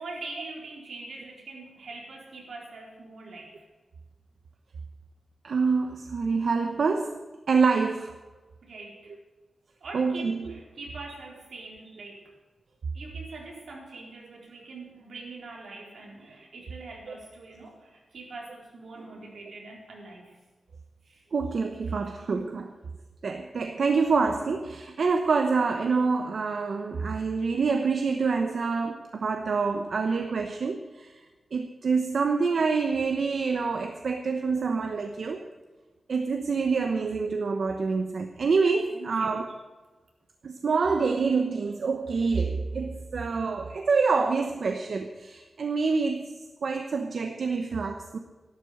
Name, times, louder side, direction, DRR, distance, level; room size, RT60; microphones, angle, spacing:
voice 1, 0.0-3.6 8.6-9.2 9.8-12.3 12.9-20.4 21.0-21.2 21.9-22.0 38.9-39.5, right 3 dB, 90° right, -1 dB, 4.2 m, -43 dB
voice 2, 5.4-8.1 9.9-10.5 21.3-22.7 23.2-31.2 31.5-35.5 36.1-39.5 40.4-48.2, right 4 dB, 65° right, 5 dB, 1.0 m, -26 dB
13.5 x 12.0 x 6.6 m, 1.3 s
wide cardioid pair, 165°, 0 cm